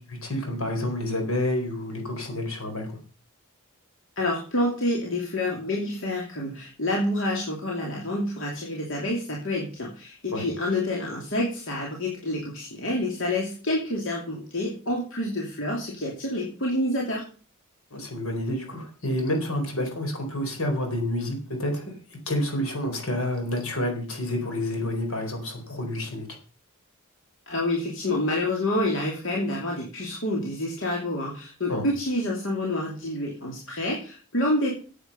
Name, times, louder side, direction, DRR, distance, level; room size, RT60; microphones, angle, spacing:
voice 1, 0.1-2.9 10.3-10.4 17.9-21.9 22.3-26.3 31.7-31.9, left 1 dB, 75° left, 4 dB, 4.2 m, -29 dB
voice 2, 4.2-17.2 27.5-34.7, left 1 dB, 60° left, -2 dB, 2.8 m, -28 dB
9.5 x 8.6 x 6.9 m, 0.38 s
head